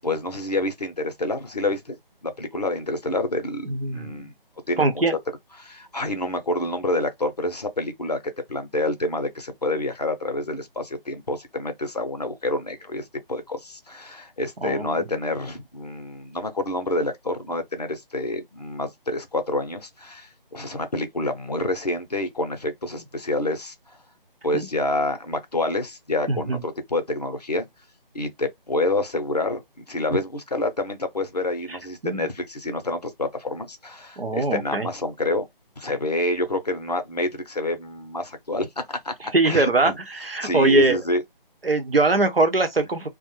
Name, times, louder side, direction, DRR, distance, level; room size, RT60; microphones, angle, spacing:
voice 1, 0.0-4.3 4.7-4.9 5.6-8.2 8.5-23.7 24.4-27.7 28.1-35.5 35.8-40.0 40.4-41.2, left 2 dB, 45° left, 0.5 m, -28 dB
voice 2, 3.7-4.2 4.8-5.2 14.6-14.9 24.5-24.7 26.3-26.6 32.0-32.3 34.2-34.9 39.3-41.0 41.6-43.1, right 2 dB, 80° right, 0.8 m, -22 dB
2.4 x 2.0 x 2.9 m
figure-of-eight pair, 155°, 29 cm